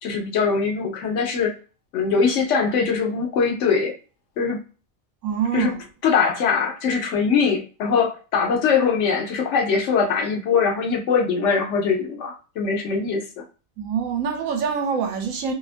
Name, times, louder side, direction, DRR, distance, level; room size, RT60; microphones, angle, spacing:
voice 1, 0.0-1.6 1.9-3.9 4.4-4.6 5.5-5.8 6.0-13.4, left 5 dB, 70° left, 0.9 m, -22 dB
voice 2, 5.2-5.8 13.8-15.5, right 6 dB, 75° right, 1.0 m, -25 dB
2.7 x 2.3 x 2.4 m
omnidirectional pair, 1.4 m